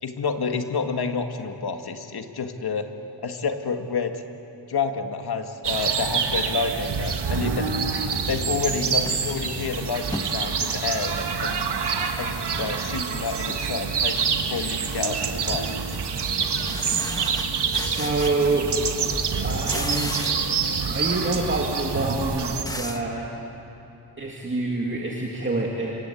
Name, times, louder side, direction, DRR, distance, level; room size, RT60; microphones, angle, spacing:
voice 1, 0.0-2.9 3.2-4.2 4.7-7.8 8.3-11.7 12.2-15.7, left 5 dB, 60° left, 5 dB, 2.0 m, -29 dB
sound 1, 5.6-22.6, right 6 dB, 65° right, 1.9 m, -27 dB
sound 2, 6.9-7.0 7.6-10.4 10.8-11.9 12.2-13.1 13.4-13.8 14.1-18.8 19.1-20.6 20.9-23.1, left 1 dB, 10° left, 1.3 m, -38 dB
voice 2, 17.8-18.7 19.4-20.2 20.9-23.3 24.2-26.0, right 3 dB, 25° right, -2 dB, 2.6 m, -26 dB
27.5 x 25.0 x 8.6 m, 3.0 s
wide cardioid pair, 135°, 43 cm